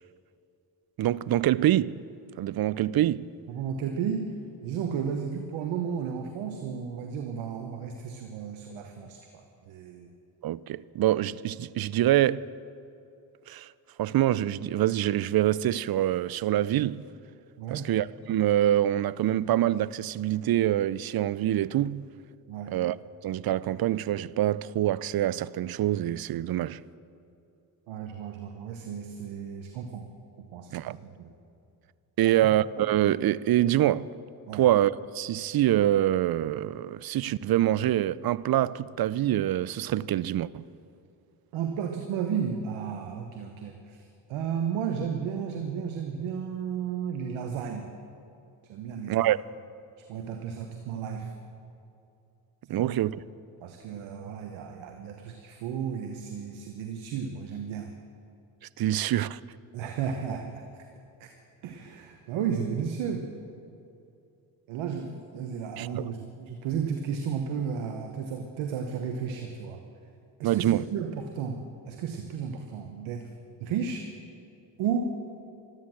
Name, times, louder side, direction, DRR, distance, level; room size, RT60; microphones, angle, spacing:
voice 1, 1.0-2.0 2.4-3.3 10.4-12.5 13.5-13.7 14.0-17.1 17.7-22.1 22.7-23.0 23.2-26.8 30.7-31.0 32.2-34.1 34.5-40.6 49.1-49.4 52.7-53.2 58.8-59.4 65.8-66.1 70.4-70.9, right 13 dB, 50° right, 0.6 m, -25 dB
voice 2, 3.5-4.3 4.6-10.1 17.6-17.9 22.5-22.7 27.9-30.1 30.5-31.3 32.2-32.4 34.5-34.6 41.5-47.9 48.6-49.3 50.1-51.3 52.8-52.9 53.6-57.9 59.7-60.8 61.2-61.3 61.6-63.3 64.7-69.8 70.4-70.7 70.9-73.3 73.6-74.1 74.8-75.2, right 7 dB, 80° right, 1.2 m, -33 dB
13.0 x 13.0 x 7.6 m
supercardioid pair, 55°, 47 cm